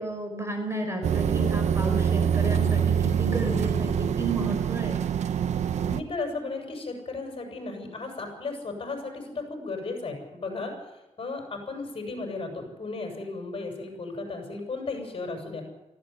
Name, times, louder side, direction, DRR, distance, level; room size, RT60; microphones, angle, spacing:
voice 1, 0.0-5.0, right 2 dB, 25° right, 5 dB, 5.7 m, -32 dB
sound 1, 1.0-6.0, right 8 dB, 90° right, 1.0 m, -25 dB
voice 2, 5.8-15.7, left 3 dB, 50° left, 3 dB, 7.0 m, -35 dB
18.5 x 15.5 x 9.5 m, 1.0 s
cardioid pair, 90°, 11 cm